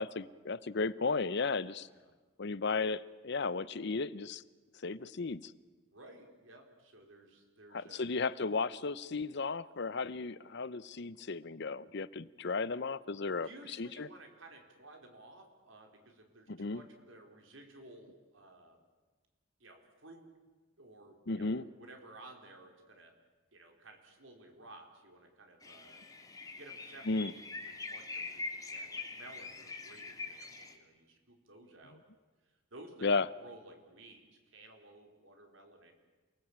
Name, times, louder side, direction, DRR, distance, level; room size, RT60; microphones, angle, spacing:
voice 1, 0.0-1.9 2.4-4.4 4.8-5.5 7.7-13.5 13.8-14.1 16.5-16.8 21.3-21.6 27.1-27.3 33.0-33.3, left 4 dB, 55° left, 18 dB, 0.7 m, -34 dB
voice 2, 1.8-2.1 5.9-8.1 13.4-18.8 19.6-20.3 20.8-23.1 23.5-26.0 26.5-27.3 27.6-33.1 33.4-35.9, right 2 dB, 70° right, 4 dB, 4.5 m, -55 dB
sound 1, 25.6-30.7, left 3 dB, 20° left, 2.2 m, -44 dB
28.5 x 19.5 x 8.8 m, 1.3 s
head